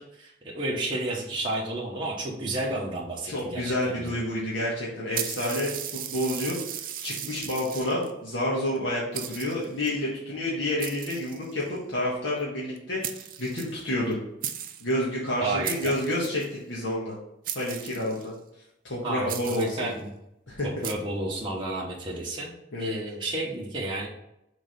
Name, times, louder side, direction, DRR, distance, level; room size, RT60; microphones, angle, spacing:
voice 1, 0.0-4.2 15.4-15.9 19.0-20.1 20.6-24.1, right 2 dB, 25° right, -5 dB, 1.1 m, -32 dB
voice 2, 3.3-14.2 14.8-17.1 17.5-18.3 18.8-19.9 20.5-20.7 22.7-23.0, left 1 dB, 85° left, -6 dB, 1.7 m, -29 dB
sound 1, 5.1-8.1 8.8-8.9 9.1-9.9 10.8-11.8 12.8-12.9 13.0-14.1 14.4-14.9 15.6-16.5 17.4-18.3 19.3-19.9 20.8-20.9, right 10 dB, 50° right, 0.6 m, -36 dB
6.4 x 3.9 x 5.2 m, 0.82 s
head